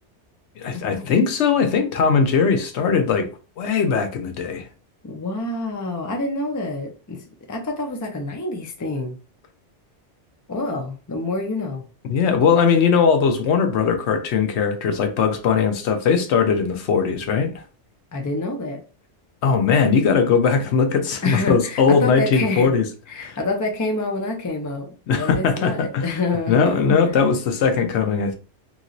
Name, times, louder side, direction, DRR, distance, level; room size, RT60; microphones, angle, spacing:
voice 1, 0.6-3.3 3.6-4.6 12.1-17.6 19.4-22.8 23.2-23.4 25.1-26.1 26.5-28.3, left 6 dB, 75° left, 0.9 m, -19 dB
voice 2, 5.0-7.2 7.5-9.2 10.5-11.8 18.1-18.8 21.2-22.7 23.1-26.9, left 2 dB, 30° left, 0.3 m, -27 dB
3.0 x 2.8 x 2.6 m
omnidirectional pair, 1.2 m